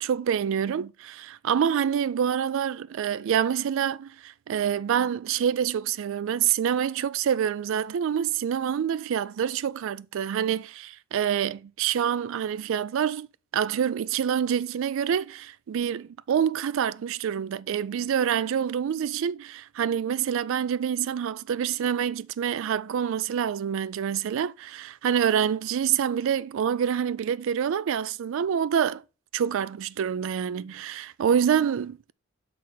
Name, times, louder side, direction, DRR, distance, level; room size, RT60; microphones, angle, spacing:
voice 1, 0.0-13.3 13.5-29.0 29.3-32.1, right 8 dB, 60° right, 0.3 m, -26 dB
6.0 x 4.7 x 4.2 m
head